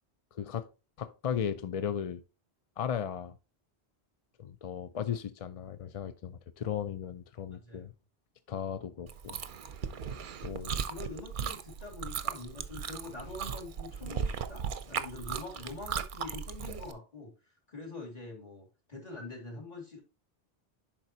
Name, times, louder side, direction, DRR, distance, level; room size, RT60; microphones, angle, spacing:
voice 1, 0.3-0.7 1.0-2.2 2.8-3.4 4.4-7.9 8.5-9.4 10.4-10.8, left 8 dB, 50° left, 0.4 m, -36 dB
voice 2, 7.5-7.9 10.7-17.3 17.7-20.0, left 3 dB, 35° left, 2.6 m, -44 dB
Chewing mastication, 9.1-16.9, right 7 dB, 55° right, 0.7 m, -37 dB
10.5 x 4.4 x 2.8 m
omnidirectional pair, 1.1 m